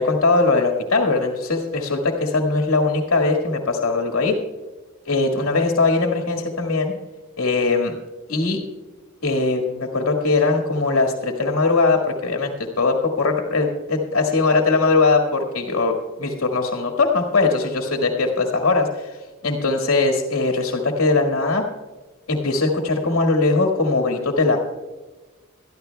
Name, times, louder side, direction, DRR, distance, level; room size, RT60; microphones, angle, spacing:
voice 1, 0.0-4.3 5.1-6.9 7.4-7.9 8.3-8.6 9.2-19.1 19.4-21.6 22.3-24.6, left 3 dB, 70° left, 3 dB, 1.7 m, -20 dB
22.0 x 13.0 x 2.3 m, 1.2 s
head